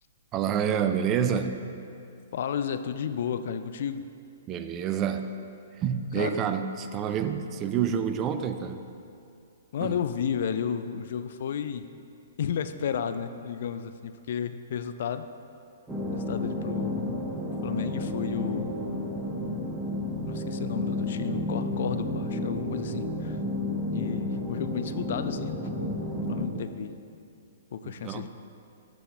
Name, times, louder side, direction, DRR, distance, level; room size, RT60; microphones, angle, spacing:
voice 1, 0.3-1.6 4.5-5.3 5.8-8.8 9.8-10.0 27.8-28.3, right 8 dB, 25° right, 9 dB, 0.4 m, -28 dB
voice 2, 2.3-4.0 6.1-6.4 9.7-11.9 12.4-15.3 16.1-17.0 17.6-18.7 20.2-23.4 23.8-26.0 26.3-26.9 27.7-28.3, left 7 dB, 55° left, 10 dB, 0.3 m, -32 dB
sound 1, 15.9-26.5, left 1 dB, 5° right, 0.9 m, -31 dB
12.0 x 4.1 x 3.3 m, 2.5 s
figure-of-eight pair, 115°, 0 cm